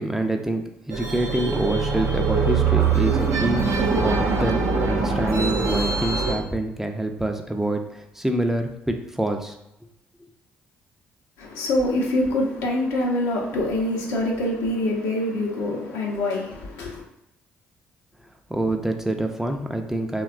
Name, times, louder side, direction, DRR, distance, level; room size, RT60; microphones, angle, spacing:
voice 1, 0.0-4.6 4.8-9.6 18.5-20.2, right 1 dB, 5° right, 0.4 m, -26 dB
sound 1, 0.9-6.3, right 5 dB, 70° right, 0.5 m, -23 dB
voice 2, 11.4-17.0, left 1 dB, 75° left, 0.6 m, -25 dB
2.7 x 2.2 x 2.4 m
hypercardioid pair, 50°, 5 cm